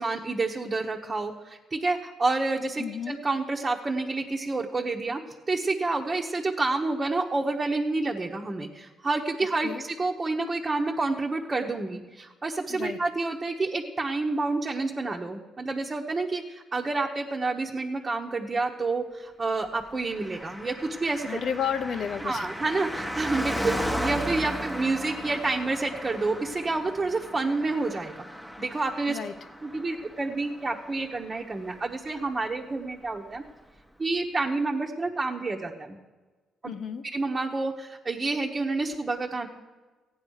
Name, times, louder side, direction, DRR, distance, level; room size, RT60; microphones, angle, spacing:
voice 1, 0.0-5.2 5.5-21.4 22.2-28.1 28.6-29.2 29.6-33.4 34.0-36.0 36.6-36.7 37.1-39.5, right 3 dB, 25° right, -1 dB, 1.3 m, -29 dB
voice 2, 2.8-3.2 9.6-9.8 12.7-13.0 21.3-22.5 29.1-29.3 36.6-37.0, left 7 dB, 60° left, 10 dB, 1.1 m, -32 dB
Car passing by, 20.1-31.9 32.2-32.3, equal, 5° left, 1.3 m, -36 dB
15.0 x 9.7 x 6.5 m, 1.3 s
cardioid pair, 90°, 0 cm